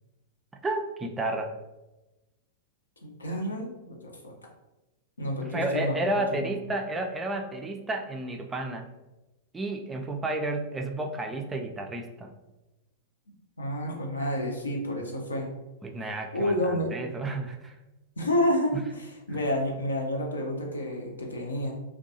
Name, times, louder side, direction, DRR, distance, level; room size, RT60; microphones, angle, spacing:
voice 1, 0.6-1.5 5.5-8.9 9.5-12.3 15.8-17.7 18.7-18.8, right 2 dB, 15° right, 3 dB, 0.3 m, -31 dB
voice 2, 3.0-4.3 5.2-6.5 13.6-15.5 16.3-16.9 18.2-21.7, left 1 dB, 80° left, 0 dB, 0.5 m, -29 dB
2.6 x 2.2 x 2.6 m, 1.0 s
figure-of-eight pair, 100°, 0 cm